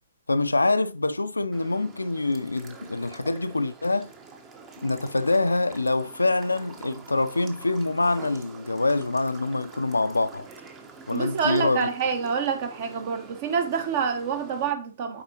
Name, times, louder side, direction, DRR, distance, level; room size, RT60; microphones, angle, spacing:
voice 1, 0.3-4.1 4.8-10.5 11.1-11.9, left 2 dB, 80° left, 0.5 m, -25 dB
sound 1, 1.5-14.7, right 4 dB, 20° right, 1.0 m, -46 dB
voice 2, 11.1-15.2, right 6 dB, 40° right, 1.4 m, -27 dB
8.4 x 4.7 x 2.9 m
figure-of-eight pair, 120°, 0 cm